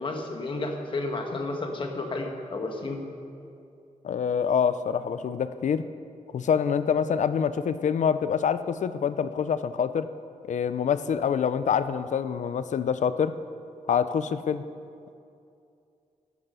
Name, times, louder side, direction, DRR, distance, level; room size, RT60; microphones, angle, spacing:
voice 1, 0.0-3.0, left 2 dB, 40° left, 3 dB, 1.4 m, -32 dB
voice 2, 4.0-5.8 6.3-10.1 10.4-13.3 13.9-14.6, left 7 dB, 65° left, 13 dB, 0.5 m, -26 dB
12.0 x 11.5 x 5.5 m, 2.5 s
wide cardioid pair, 175°, 13 cm